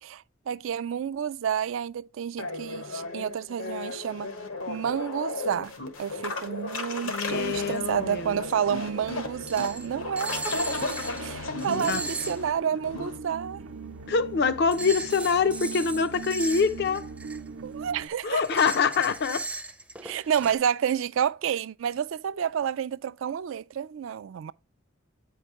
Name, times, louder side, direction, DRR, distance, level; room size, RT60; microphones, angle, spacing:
voice 1, 0.0-4.3 4.7-5.7 6.0-13.6 17.6-18.4 20.0-24.5, right 8 dB, 65° right, 0.3 m, -30 dB
sound 1, 2.4-13.2, left 3 dB, 80° left, 1.3 m, -35 dB
voice 2, 7.0-8.4 11.7-12.0 14.1-17.1 18.2-19.5, left 5 dB, 50° left, 0.5 m, -25 dB
sound 2, 7.3-18.1, right 4 dB, 90° right, 0.7 m, -42 dB
sound 3, 8.4-8.5 9.5-9.9 10.2-11.3 11.6-12.4 14.7-17.5 18.0-20.6, right 2 dB, 5° right, 0.5 m, -37 dB
8.5 x 4.6 x 2.9 m
head